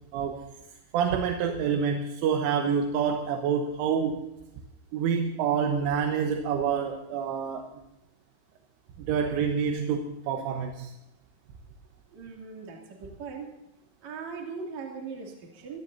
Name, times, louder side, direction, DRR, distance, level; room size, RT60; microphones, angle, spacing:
voice 1, 0.1-0.5 0.9-4.2 4.9-7.7 9.0-10.9, right 7 dB, 80° right, 4 dB, 3.6 m, -27 dB
voice 2, 12.1-13.5 14.0-15.8, right 5 dB, 40° right, -1 dB, 3.4 m, -39 dB
23.5 x 18.0 x 2.7 m, 0.94 s
omnidirectional pair, 5.6 m